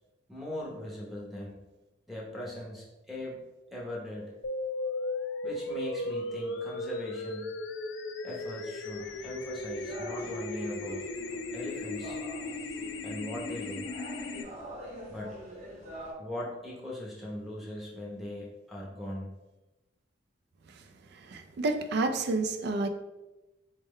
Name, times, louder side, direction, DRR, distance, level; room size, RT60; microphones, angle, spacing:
voice 1, 0.3-1.6 2.1-3.4 3.7-4.3 5.4-7.5 8.2-11.0 11.5-12.2 13.0-13.9 15.1-15.4 16.2-19.3, left 1 dB, ahead, -5 dB, 0.7 m, -40 dB
sound 1, 4.4-14.4, left 2 dB, 70° left, 0.4 m, -36 dB
sound 2, 8.9-16.1, equal, 35° right, 0.9 m, -46 dB
voice 2, 21.1-22.9, right 3 dB, 55° right, 7 dB, 0.3 m, -30 dB
4.3 x 2.2 x 3.5 m, 1.1 s
head